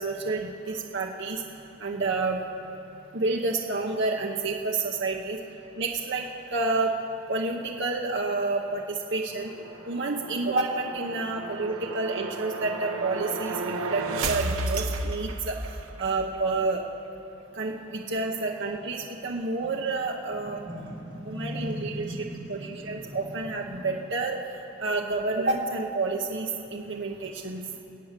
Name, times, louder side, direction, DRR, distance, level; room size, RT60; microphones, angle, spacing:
voice 1, 0.0-1.4 1.8-2.4 3.1-5.4 5.8-6.2 6.5-7.0 7.3-9.5 9.8-15.5 16.0-16.8 17.6-20.6 21.2-22.2 22.5-24.4 24.8-27.6, right 3 dB, 55° right, 0 dB, 1.0 m, -29 dB
sound 1, 9.3-16.1, right 3 dB, 75° right, 1.0 m, -33 dB
voice 2, 20.4-23.2 23.7-23.9 27.7-27.8, equal, 20° right, -6 dB, 4.8 m, -38 dB
23.5 x 8.6 x 6.8 m, 3.0 s
head